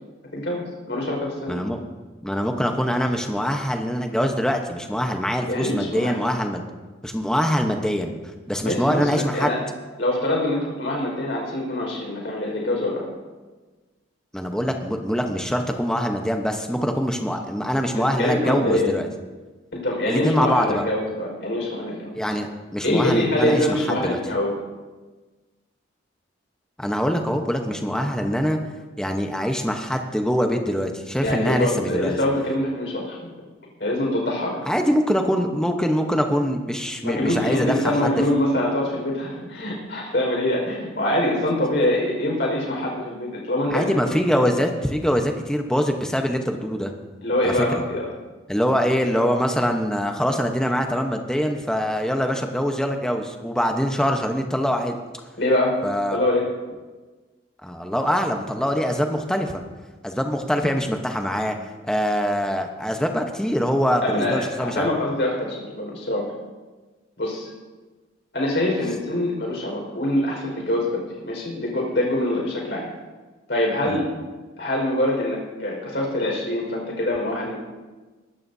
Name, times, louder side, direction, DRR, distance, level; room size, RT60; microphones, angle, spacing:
voice 1, 0.3-1.6 5.5-6.2 8.6-9.6 10.0-13.0 17.9-19.0 19.7-22.1 22.8-24.6 31.2-33.3 33.8-34.5 37.0-43.9 44.4-44.5 47.2-48.1 55.4-55.8 56.1-56.5 64.0-66.3 67.2-67.5 68.3-72.9 73.5-74.0 74.6-77.6, left 1 dB, 60° left, -2 dB, 5.0 m, -24 dB
voice 2, 1.5-1.8 2.2-6.7 7.0-8.1 8.5-9.5 14.3-19.1 20.1-20.8 22.1-24.2 26.8-28.6 29.0-32.1 34.7-38.1 43.7-46.9 47.4-47.6 48.5-55.0 55.8-56.2 57.6-59.6 60.0-61.6 61.9-64.9 73.8-74.0, equal, 5° left, 3 dB, 1.0 m, -23 dB
22.0 x 13.0 x 2.8 m, 1.3 s
head